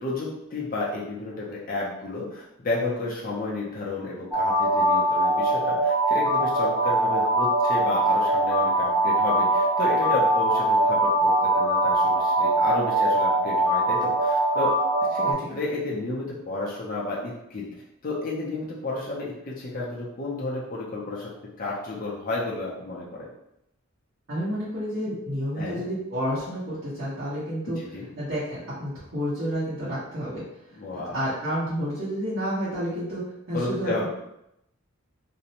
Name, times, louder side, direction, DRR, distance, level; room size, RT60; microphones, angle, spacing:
voice 1, 0.0-14.7 15.1-17.7 18.0-21.3 21.6-23.3 25.6-25.9 27.8-28.1 30.7-31.2 33.5-34.1, left 2 dB, 40° left, -5 dB, 0.5 m, -31 dB
sound 1, 4.3-15.3, right 1 dB, 10° right, 0.7 m, -22 dB
voice 2, 24.3-27.8 28.2-30.4 31.1-33.2 33.5-33.9, equal, 70° right, -12 dB, 1.0 m, -30 dB
2.5 x 2.0 x 2.8 m, 0.83 s
head